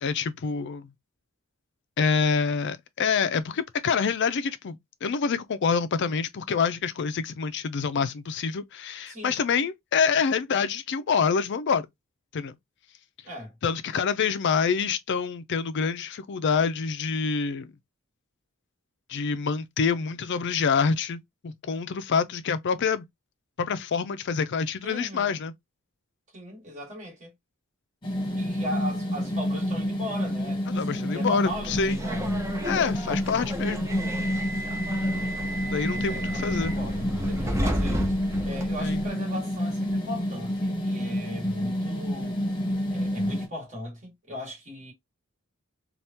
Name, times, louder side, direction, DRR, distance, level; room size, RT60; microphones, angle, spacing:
voice 1, 0.0-0.9 2.0-11.9 12.3-12.6 13.6-17.7 19.1-23.1 23.6-25.5 30.7-32.0 32.6-33.9 35.7-36.7 38.8-39.0, left 5 dB, 55° left, 0.4 m, -26 dB
voice 2, 9.1-9.7 13.2-13.5 24.8-25.4 26.3-27.3 28.3-32.4 35.9-38.0 38.4-42.4 42.9-44.9, equal, 35° right, 1.9 m, -38 dB
sound 1, 28.0-43.5, equal, 20° left, 1.1 m, -29 dB
Subway metro underground, 31.5-39.1, equal, 15° right, 0.6 m, -32 dB
3.5 x 2.4 x 2.8 m
head